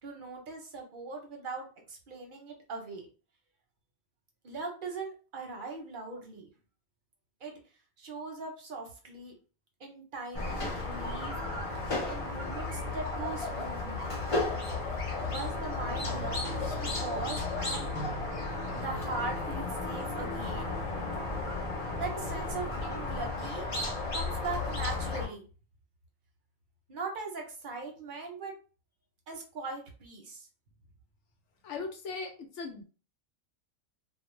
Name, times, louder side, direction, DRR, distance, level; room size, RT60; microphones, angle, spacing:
voice 1, 0.0-3.1 4.4-6.5 7.4-7.6 8.0-9.3 9.8-11.4 12.0-14.1 15.2-17.9 18.7-20.8 22.0-23.7 24.1-25.5 26.9-28.5 29.3-30.5, right 3 dB, 50° right, 2 dB, 0.7 m, -40 dB
Squeak, 10.3-25.3, left 2 dB, 40° left, 0.4 m, -34 dB
voice 2, 31.6-32.8, left 4 dB, 70° left, 4 dB, 0.9 m, -38 dB
2.4 x 2.0 x 3.0 m, 0.36 s
omnidirectional pair, 1.4 m